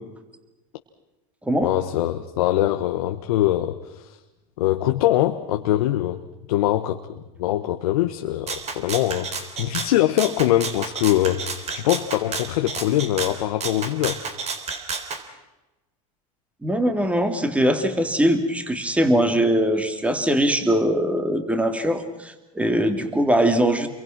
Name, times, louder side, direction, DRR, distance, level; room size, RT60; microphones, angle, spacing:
voice 1, 1.6-4.2 4.6-6.2 6.5-7.0 7.4-14.2, left 14 dB, 80° left, 6 dB, 1.3 m, -23 dB
Rattle (instrument), 8.5-15.2, right 5 dB, 35° right, 3.9 m, -31 dB
voice 2, 16.6-23.9, right 1 dB, 5° right, 7 dB, 3.0 m, -21 dB
29.0 x 23.0 x 6.0 m, 1.0 s
supercardioid pair, 105°, 18 cm